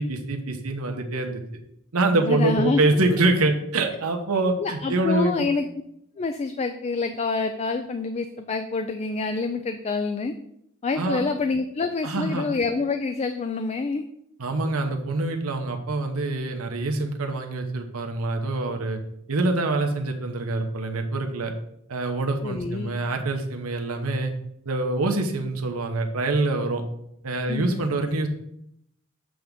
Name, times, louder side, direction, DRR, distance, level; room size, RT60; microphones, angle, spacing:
voice 1, 0.0-1.4 1.9-5.5 11.0-11.2 12.0-12.4 14.4-19.0 19.3-21.5 21.9-24.3 24.6-26.8 27.2-28.3, right 2 dB, 85° right, 4 dB, 1.0 m, -25 dB
voice 2, 2.1-2.8 4.6-5.7 6.2-10.3 10.8-14.0 22.4-23.0 27.5-27.9, left 4 dB, 30° left, 8 dB, 0.3 m, -27 dB
7.7 x 3.5 x 5.2 m, 0.75 s
head